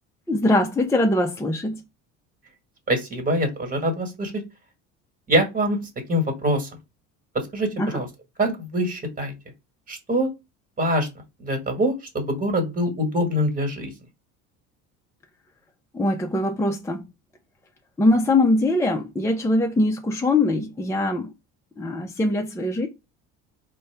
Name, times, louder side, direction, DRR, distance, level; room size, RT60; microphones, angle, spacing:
voice 1, 0.3-1.8 7.8-8.0 15.9-17.0 18.0-21.3 21.8-22.9, left 2 dB, 10° left, 0.6 m, -22 dB
voice 2, 2.9-4.3 5.3-5.8 6.1-6.7 7.5-8.1 8.4-9.3 9.9-10.3 10.8-11.1 11.4-13.9, equal, 25° right, 1.6 m, -24 dB
4.0 x 2.3 x 3.4 m
hypercardioid pair, 75°, 35 cm